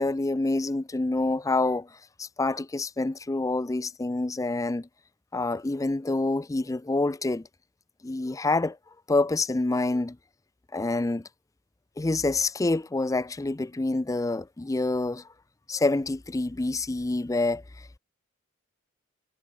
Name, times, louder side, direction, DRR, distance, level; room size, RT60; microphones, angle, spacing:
voice 1, 0.0-1.9 2.2-4.9 5.3-7.5 8.0-8.8 9.1-10.2 10.7-11.3 12.0-15.2 15.7-17.6, left 2 dB, 15° left, 0.4 m, -27 dB
head